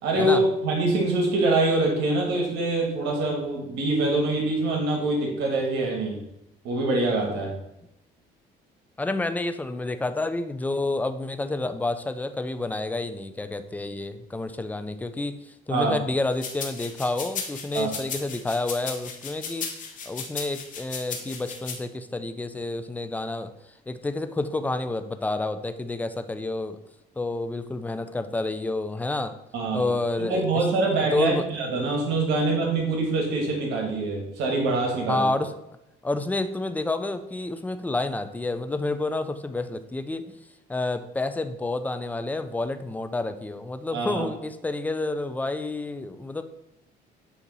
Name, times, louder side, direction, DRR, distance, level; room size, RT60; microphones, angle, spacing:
voice 1, 0.0-6.2 6.6-7.5 15.7-15.9 17.7-17.9 29.5-29.9 30.2-35.3 43.9-44.2, right 2 dB, 85° right, 0 dB, 1.5 m, -24 dB
voice 2, 9.0-19.7 20.1-23.5 23.9-26.8 27.2-29.4 29.7-30.7 30.9-31.4 35.1-35.5 36.0-40.3 40.7-46.4, left 2 dB, 10° left, 10 dB, 0.4 m, -29 dB
sound 1, 16.4-21.7, left 5 dB, 50° left, 1.2 m, -35 dB
8.1 x 2.9 x 4.0 m, 0.86 s
cardioid pair, 110°, 17 cm